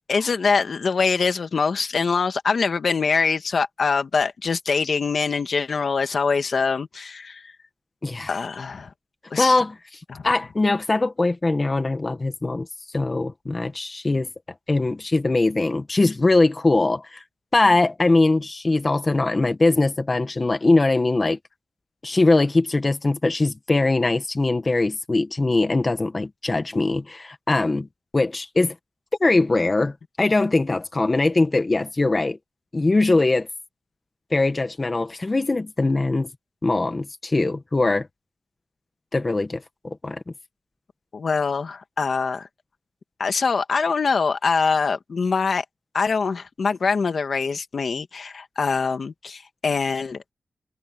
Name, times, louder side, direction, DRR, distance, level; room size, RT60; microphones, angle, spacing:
voice 1, 0.1-7.5 8.3-8.9 9.3-9.6 10.1-10.3 41.1-42.5 43.2-45.6 45.9-50.2, left 5 dB, 55° left, 1.9 m, -24 dB
voice 2, 8.0-8.3 9.4-9.7 10.2-12.7 12.9-14.3 14.7-17.2 17.5-21.4 22.0-27.9 28.1-28.7 29.2-32.4 32.7-33.5 34.3-36.3 36.6-38.1 39.1-40.2, left 2 dB, 25° left, 1.7 m, -21 dB
wide cardioid pair, 150°, 0 cm